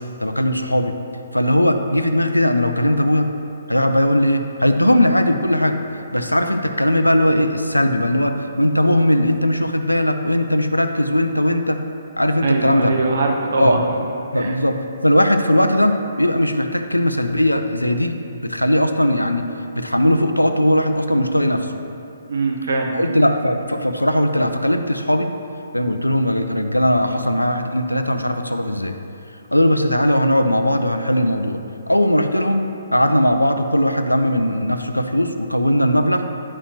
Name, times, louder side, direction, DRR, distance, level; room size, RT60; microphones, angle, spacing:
voice 1, 0.2-0.9 1.3-3.3 3.7-5.8 6.1-11.8 12.2-12.9 13.6-13.8 14.3-18.2 18.4-19.5 19.7-21.7 22.9-25.3 25.7-28.9 29.5-31.6 31.9-36.3, equal, 85° left, 7 dB, 0.5 m, -18 dB
voice 2, 12.4-13.8 14.3-14.5 22.3-22.9, right 3 dB, 55° right, 1 dB, 1.0 m, -21 dB
9.9 x 5.7 x 2.9 m, 2.7 s
figure-of-eight pair, 130°, 0 cm